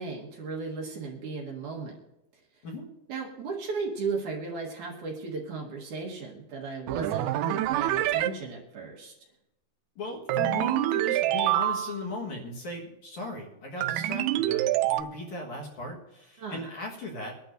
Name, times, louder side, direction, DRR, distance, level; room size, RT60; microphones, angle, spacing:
voice 1, 0.0-2.0 3.1-9.1 16.4-16.7, right 4 dB, 60° right, -1 dB, 2.6 m, -35 dB
sound 1, 6.9-8.3 10.3-12.1 13.8-15.0, right 14 dB, 90° right, 1.9 m, -26 dB
voice 2, 10.0-17.3, left 2 dB, 60° left, -1 dB, 2.6 m, -37 dB
24.0 x 11.5 x 2.6 m, 0.92 s
omnidirectional pair, 4.4 m